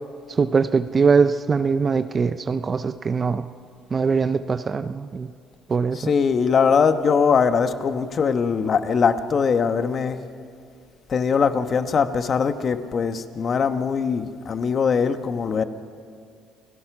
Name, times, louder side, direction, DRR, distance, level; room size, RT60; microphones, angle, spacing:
voice 1, 0.3-3.5 3.9-5.3 5.7-6.1, right 5 dB, 35° right, 11 dB, 0.6 m, -22 dB
voice 2, 5.9-10.2 11.1-15.6, left 6 dB, 45° left, 9 dB, 1.2 m, -21 dB
29.0 x 16.5 x 6.1 m, 2.2 s
supercardioid pair, 80°, 0 cm